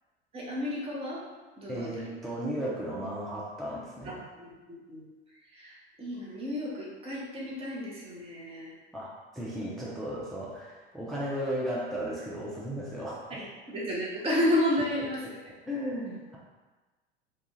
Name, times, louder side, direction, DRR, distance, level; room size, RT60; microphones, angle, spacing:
voice 1, 0.3-1.2 1.6-2.1 4.0-5.0 5.3-8.8 13.3-15.2, left 1 dB, 20° right, -6 dB, 0.8 m, -32 dB
voice 2, 1.7-4.1 8.9-13.4 15.2-15.3 15.7-16.4, equal, ahead, -6 dB, 0.3 m, -35 dB
2.3 x 2.3 x 2.9 m, 1.2 s
figure-of-eight pair, 80°, 33 cm